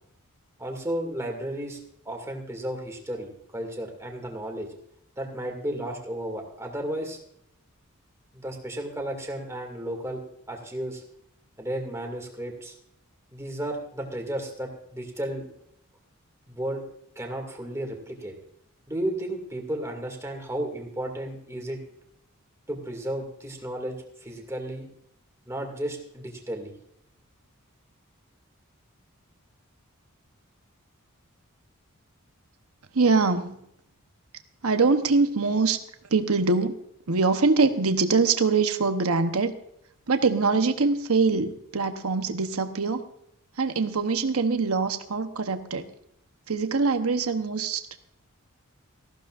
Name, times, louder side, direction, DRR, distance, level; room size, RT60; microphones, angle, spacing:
voice 1, 0.6-1.8 2.0-4.7 5.2-7.2 8.3-11.0 11.6-12.7 13.3-15.4 16.5-16.8 17.2-18.3 18.9-21.8 22.7-24.9 25.5-26.7, right 1 dB, 15° right, 2 dB, 2.3 m, -33 dB
voice 2, 32.9-33.6 34.6-35.8 36.1-36.8 37.1-39.5 40.1-43.0 43.6-45.8 46.5-47.8, right 4 dB, 70° right, 8 dB, 1.0 m, -23 dB
18.5 x 14.5 x 2.5 m, 0.74 s
head